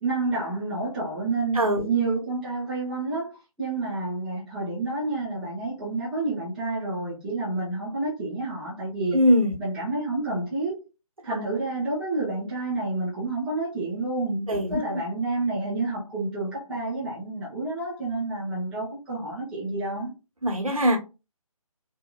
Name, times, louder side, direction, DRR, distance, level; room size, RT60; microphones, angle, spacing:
voice 1, 0.0-3.3 3.6-9.2 9.6-10.8 11.2-20.1, right 2 dB, 5° right, 0.7 m, -29 dB
voice 2, 1.5-1.9 9.1-9.5 14.5-15.0 20.4-21.0, equal, 70° right, 1.1 m, -22 dB
2.8 x 2.6 x 2.2 m
figure-of-eight pair, 150°, 18 cm